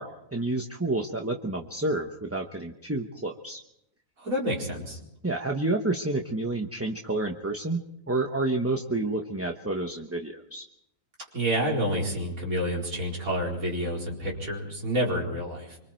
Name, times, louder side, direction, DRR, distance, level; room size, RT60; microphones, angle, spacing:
voice 1, 0.0-3.6 5.2-7.8 8.1-10.6, right 2 dB, 10° right, 2 dB, 0.9 m, -29 dB
voice 2, 4.2-5.0 11.3-15.8, equal, 85° right, -3 dB, 5.0 m, -29 dB
26.0 x 25.0 x 4.5 m, 0.80 s
omnidirectional pair, 1.4 m